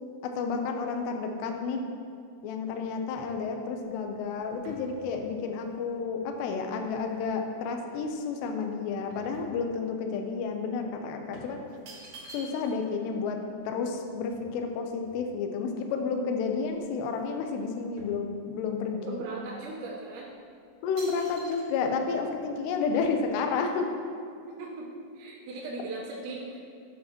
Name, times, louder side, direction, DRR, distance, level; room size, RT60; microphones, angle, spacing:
voice 1, 0.2-1.8 2.4-11.6 12.3-13.4 13.7-19.2 20.8-23.9, left 5 dB, 80° left, 3 dB, 2.8 m, -31 dB
sound 1, 2.4-7.5 7.9-10.1 10.4-10.6 11.3-12.9 13.2-13.3 13.5-15.7 16.2-16.3 16.6-17.3 17.6-18.8 19.4-19.6 20.2-20.4 21.0-21.6, right 2 dB, 65° right, 1.8 m, -51 dB
voice 2, 19.0-20.3 24.5-24.9 25.1-26.6, right 3 dB, 85° right, -5 dB, 3.4 m, -38 dB
12.5 x 8.9 x 3.0 m, 2.3 s
omnidirectional pair, 5.1 m